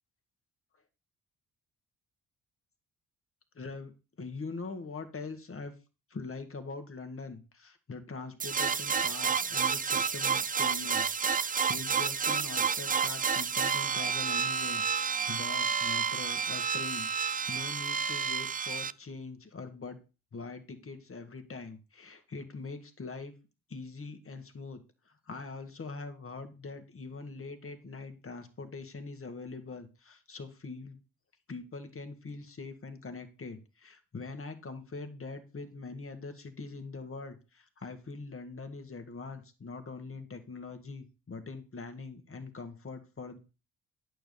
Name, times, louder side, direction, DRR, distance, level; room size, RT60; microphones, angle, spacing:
voice 1, 3.6-3.9 4.2-5.7 6.1-20.0 20.3-23.3 23.7-31.0 31.5-43.4, left 4 dB, 35° left, 7 dB, 1.9 m, -43 dB
sound 1, 8.4-18.9, right 6 dB, 25° right, 0.5 m, -30 dB
9.0 x 4.7 x 7.0 m, 0.32 s
supercardioid pair, 55°, 36 cm